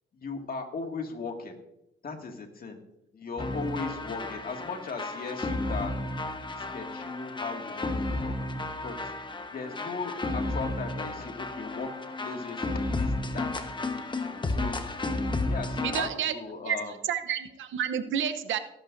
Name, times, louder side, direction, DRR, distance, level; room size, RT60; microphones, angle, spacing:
voice 1, 0.1-1.6 2.0-2.8 3.1-6.1 6.6-8.3 8.8-9.1 9.5-13.5 14.3-14.8 15.5-16.9, left 4 dB, 50° left, 3 dB, 2.1 m, -37 dB
sound 1, 3.4-16.1, left 2 dB, 25° left, 1.1 m, -32 dB
voice 2, 15.8-16.3 16.7-16.8 17.1-18.6, right 9 dB, 75° right, 9 dB, 0.9 m, -29 dB
18.5 x 11.0 x 2.6 m, 0.84 s
cardioid pair, 90°, 20 cm